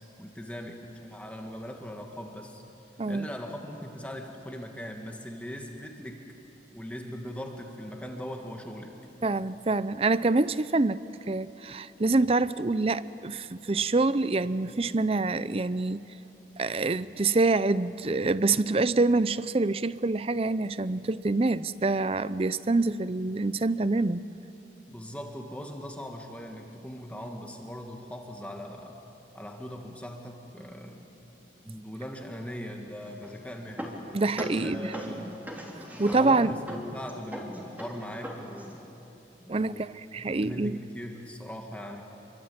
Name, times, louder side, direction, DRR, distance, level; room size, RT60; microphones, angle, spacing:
voice 1, 0.0-2.6 3.1-6.3 6.7-8.9 24.9-29.0 29.3-31.1 31.6-34.0 34.6-35.5 36.0-38.8 39.4-42.0, equal, 10° left, 1.9 m, -40 dB
voice 2, 9.2-16.1 16.6-24.2 34.1-35.2 36.0-36.6 39.5-40.8, right 3 dB, 35° right, 0.5 m, -26 dB
sound 1, 33.0-38.8, equal, 10° right, 3.2 m, -41 dB
28.0 x 23.5 x 8.8 m
head